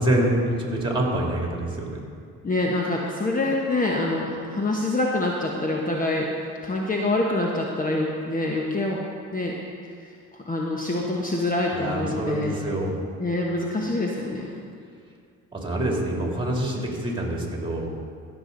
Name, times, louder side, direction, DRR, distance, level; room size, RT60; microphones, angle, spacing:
voice 1, 0.0-2.0 11.7-13.0 15.5-17.9, right 1 dB, 15° right, -1 dB, 3.0 m, -26 dB
voice 2, 2.4-6.3 6.6-9.0 9.3-9.6 9.8-10.1 10.5-12.5 13.2-14.5, left 2 dB, 25° left, -1 dB, 1.2 m, -25 dB
16.0 x 7.0 x 4.0 m, 2.2 s
supercardioid pair, 70°, 33 cm